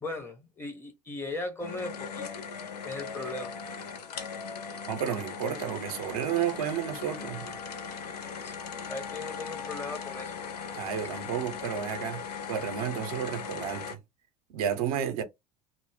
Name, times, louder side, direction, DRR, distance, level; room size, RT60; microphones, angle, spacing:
voice 1, 0.0-2.4 2.8-3.5 8.3-10.3, left 2 dB, 10° left, 0.7 m, -38 dB
sound 1, 1.6-13.9, left 6 dB, 80° left, 0.5 m, -39 dB
voice 2, 4.9-7.6 10.7-12.2 12.5-14.0 14.5-15.2, right 9 dB, 65° right, 0.6 m, -31 dB
2.0 x 2.0 x 3.2 m
figure-of-eight pair, 70°, 20 cm